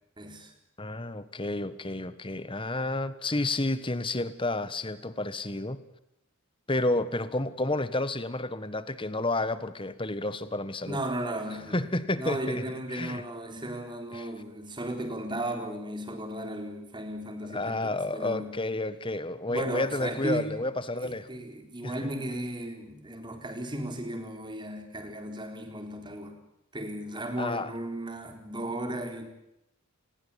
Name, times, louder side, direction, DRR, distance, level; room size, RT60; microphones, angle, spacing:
voice 1, 0.2-0.5 10.9-11.8 12.2-18.5 19.5-20.5 20.9-26.4 26.7-29.3, right 1 dB, 20° right, 6 dB, 4.2 m, -35 dB
voice 2, 0.8-5.8 6.7-11.0 11.7-12.6 12.9-13.2 14.1-14.3 17.5-21.3 21.8-21.9 27.4-27.7, left 2 dB, 25° left, 14 dB, 1.5 m, -30 dB
28.0 x 21.0 x 8.7 m, 0.84 s
head